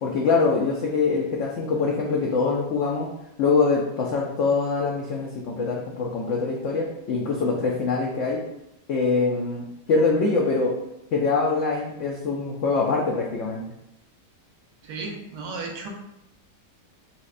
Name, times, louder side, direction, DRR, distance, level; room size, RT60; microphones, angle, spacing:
voice 1, 0.0-3.1 3.4-8.4 8.9-10.8 11.1-13.6, left 4 dB, 80° left, -2 dB, 0.6 m, -24 dB
voice 2, 14.8-15.9, right 3 dB, 85° right, 1 dB, 1.3 m, -34 dB
5.6 x 2.1 x 2.5 m, 0.85 s
omnidirectional pair, 1.8 m